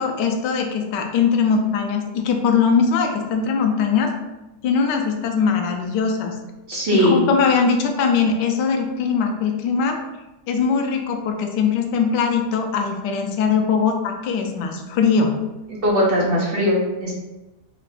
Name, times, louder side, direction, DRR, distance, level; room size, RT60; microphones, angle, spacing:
voice 1, 0.0-4.1 4.6-6.3 6.9-10.0 10.5-15.3, left 5 dB, 85° left, 3 dB, 1.2 m, -21 dB
voice 2, 6.7-7.3 15.8-17.1, equal, 45° right, -5 dB, 0.8 m, -19 dB
3.6 x 2.4 x 3.4 m, 1.0 s
omnidirectional pair, 1.8 m